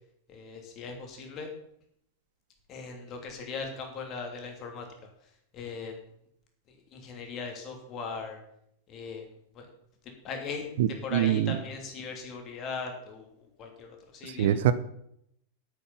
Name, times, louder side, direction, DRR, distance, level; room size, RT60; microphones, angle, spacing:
voice 1, 0.3-1.5 2.7-4.9 5.5-6.0 6.9-8.4 8.9-9.3 9.5-9.7 10.2-10.7 11.0-13.3 13.6-14.6, left 4 dB, 35° left, 3 dB, 3.0 m, -39 dB
voice 2, 10.8-11.6 14.2-14.7, right 11 dB, 55° right, 14 dB, 0.7 m, -25 dB
9.2 x 8.4 x 7.2 m, 0.73 s
figure-of-eight pair, 90°, 0 cm